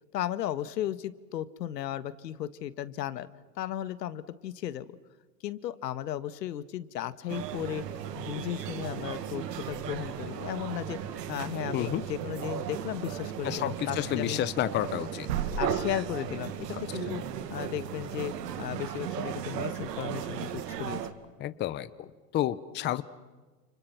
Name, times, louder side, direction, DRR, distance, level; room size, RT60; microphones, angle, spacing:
voice 1, 0.1-3.3 3.6-4.9 5.4-7.8 8.1-11.0 11.3-14.5 15.6-17.2 17.5-21.1, left 11 dB, 80° left, 14 dB, 1.7 m, -35 dB
sound 1, 7.3-21.1, right 9 dB, 80° right, 2.3 m, -36 dB
voice 2, 13.4-15.3 16.7-16.8 21.4-23.0, left 13 dB, 20° left, 14 dB, 0.8 m, -30 dB
30.0 x 29.0 x 6.0 m, 1.3 s
hypercardioid pair, 135°, 49 cm